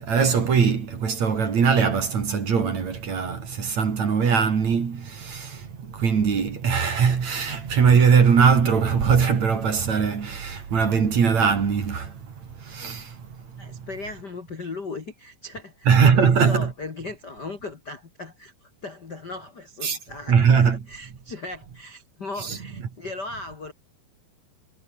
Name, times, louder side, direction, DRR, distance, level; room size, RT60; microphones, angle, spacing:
voice 1, 0.0-13.9 15.9-16.7 19.8-20.0 20.3-20.9 22.4-22.6, right 6 dB, 40° right, 3.6 m, -21 dB
voice 2, 13.6-20.4 20.6-23.7, left 3 dB, 40° left, 1.5 m, -37 dB
omnidirectional pair, 5.3 m